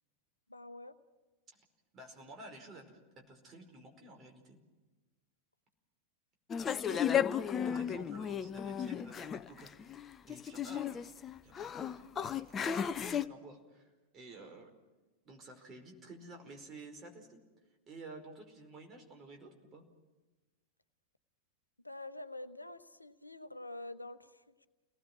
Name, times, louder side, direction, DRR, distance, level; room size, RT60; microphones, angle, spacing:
voice 1, 0.5-0.9 6.7-7.1 21.8-24.7, left 2 dB, 85° left, 12 dB, 0.9 m, -47 dB
voice 2, 1.9-4.6 7.6-9.7 10.3-11.1 11.4-14.7 15.2-17.4 17.9-19.8, right 2 dB, 25° right, 3 dB, 4.9 m, -52 dB
sound 1, 6.5-13.3, left 8 dB, 25° left, 0.7 m, -34 dB
30.0 x 19.0 x 6.2 m, 1.2 s
figure-of-eight pair, 90°, 0 cm